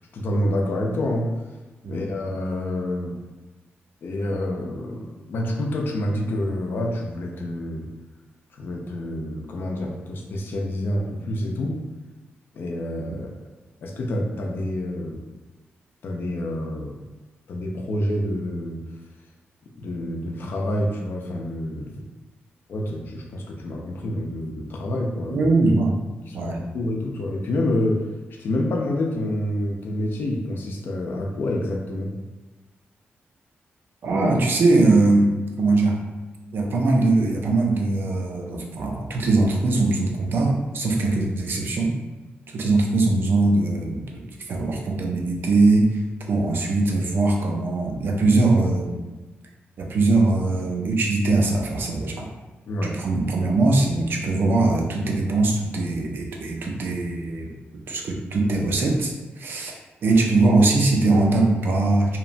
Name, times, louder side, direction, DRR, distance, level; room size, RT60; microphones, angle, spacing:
voice 1, 0.1-1.3 1.9-3.1 4.0-7.8 8.6-11.8 12.5-13.3 13.8-15.2 16.0-17.0 17.5-18.8 19.8-22.1 22.7-25.5 26.3-28.0 28.4-32.1 52.7-52.9, left 1 dB, 60° left, 1 dB, 0.4 m, -27 dB
voice 2, 25.3-25.9 26.3-26.6 34.0-36.0 36.5-41.9 42.5-45.9 46.3-49.0 49.8-52.3 52.8-57.5 57.9-59.7 60.0-62.2, right 2 dB, 60° right, 0 dB, 0.4 m, -21 dB
2.8 x 2.1 x 2.5 m, 1.2 s
wide cardioid pair, 165°, 4 cm